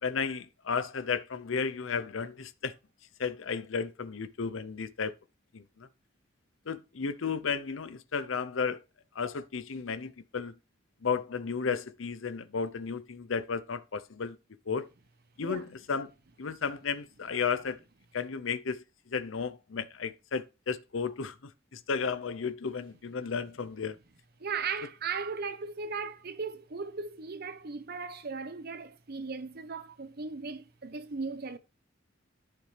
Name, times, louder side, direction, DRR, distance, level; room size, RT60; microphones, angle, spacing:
voice 1, 0.0-2.7 3.2-5.1 5.5-5.9 6.7-8.8 9.1-10.5 11.0-14.4 14.7-14.9 15.4-16.1 16.4-17.8 18.1-24.0, left 5 dB, 80° left, 0.7 m, -33 dB
voice 2, 24.4-31.6, right 5 dB, 50° right, 0.9 m, -37 dB
11.5 x 6.8 x 3.3 m
head